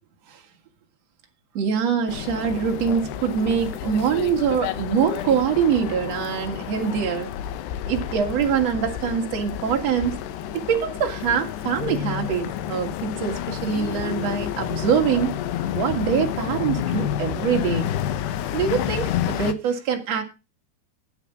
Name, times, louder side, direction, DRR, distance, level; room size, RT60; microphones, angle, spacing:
voice 1, 1.5-7.3 7.9-10.2 10.5-15.4 15.7-17.9 18.5-20.2, right 7 dB, 45° right, 2 dB, 3.2 m, -24 dB
sound 1, 2.1-19.5, left 11 dB, 80° left, 3.2 m, -30 dB
14.0 x 9.3 x 6.2 m, 0.31 s
omnidirectional pair, 4.8 m